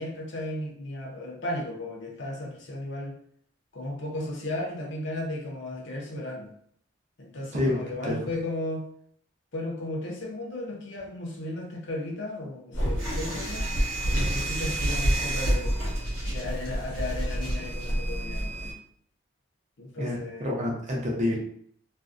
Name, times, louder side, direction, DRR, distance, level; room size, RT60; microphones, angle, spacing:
voice 1, 0.0-3.2 3.7-6.5 7.2-8.9 9.5-13.7 14.1-15.8 16.3-18.8 19.8-20.5, left 1 dB, 65° left, 0 dB, 0.6 m, -35 dB
voice 2, 7.5-8.2 20.0-21.4, left 1 dB, 35° right, -2 dB, 0.5 m, -28 dB
sound 1, 12.7-18.7, right 1 dB, 85° left, 1.0 m, -28 dB
sound 2, 13.0-17.9, right 1 dB, 85° right, 0.9 m, -38 dB
2.5 x 2.0 x 2.4 m, 0.64 s
head